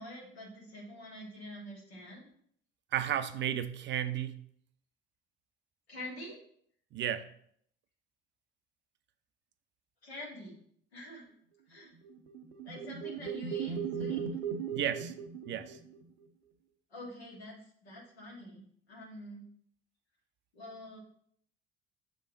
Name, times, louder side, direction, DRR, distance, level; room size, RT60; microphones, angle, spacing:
voice 1, 0.0-2.3 5.9-6.4 10.0-10.6 10.9-11.3 11.7-11.9 12.6-14.2 16.9-18.6 18.9-19.5 20.5-21.0, left 1 dB, 80° left, 1.8 m, -46 dB
voice 2, 2.9-4.4 6.9-7.3 14.7-15.1 15.5-15.8, right 10 dB, 35° right, 0.4 m, -33 dB
sound 1, 12.1-16.1, right 7 dB, 80° right, 0.6 m, -37 dB
6.8 x 3.6 x 3.9 m
figure-of-eight pair, 50°, 31 cm